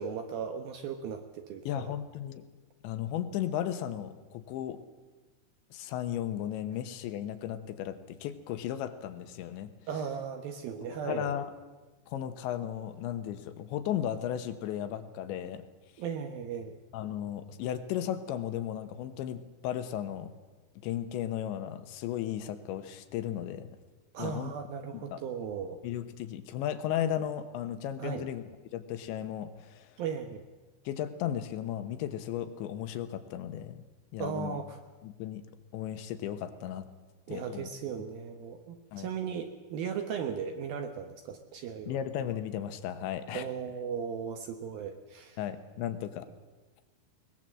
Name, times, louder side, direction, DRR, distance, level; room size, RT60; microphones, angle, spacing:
voice 1, 0.0-1.9 9.9-11.4 16.0-16.8 24.1-25.8 28.0-28.3 30.0-30.4 34.2-34.8 37.3-42.0 43.3-45.4, right 7 dB, 70° right, 7 dB, 2.3 m, -37 dB
voice 2, 1.7-2.5 2.8-4.8 5.7-9.7 10.9-11.5 12.1-15.6 16.9-20.3 20.8-23.7 24.2-24.5 24.9-25.2 25.8-28.4 28.7-30.0 30.9-33.8 34.1-34.6 35.0-35.4 35.7-36.9 37.3-37.7 38.9-39.1 41.9-43.5 45.4-46.3, left 10 dB, 80° left, 10 dB, 3.3 m, -35 dB
21.5 x 20.0 x 7.6 m, 1.2 s
omnidirectional pair, 5.3 m